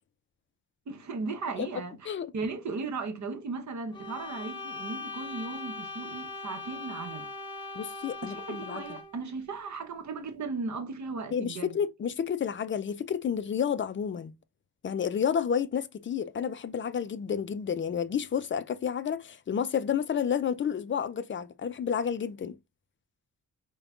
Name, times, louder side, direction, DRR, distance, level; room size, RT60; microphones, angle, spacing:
voice 1, 0.9-7.3 8.2-11.8, right 4 dB, 50° right, 0.8 m, -36 dB
sound 1, 3.9-9.2, left 3 dB, 10° left, 1.2 m, -40 dB
voice 2, 7.8-8.8 11.3-14.3 14.8-22.6, left 7 dB, 35° left, 0.4 m, -30 dB
5.1 x 2.2 x 2.3 m
cardioid pair, 85°, 37 cm